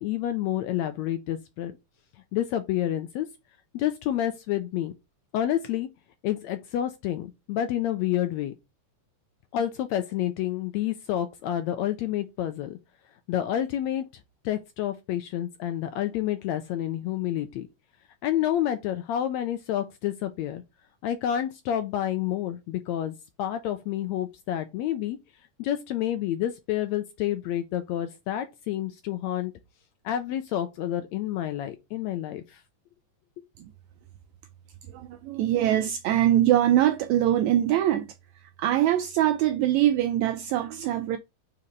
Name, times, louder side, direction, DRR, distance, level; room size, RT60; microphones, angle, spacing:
voice 1, 0.0-1.7 2.3-3.3 3.7-4.9 5.3-5.9 6.2-8.5 9.5-12.8 13.3-14.1 14.4-17.7 18.2-20.6 21.0-25.2 25.6-29.5 30.0-32.6, left 11 dB, 80° left, 1.6 m, -29 dB
voice 2, 34.9-41.2, right 12 dB, 85° right, 1.6 m, -23 dB
4.9 x 4.3 x 5.2 m
omnidirectional pair, 3.7 m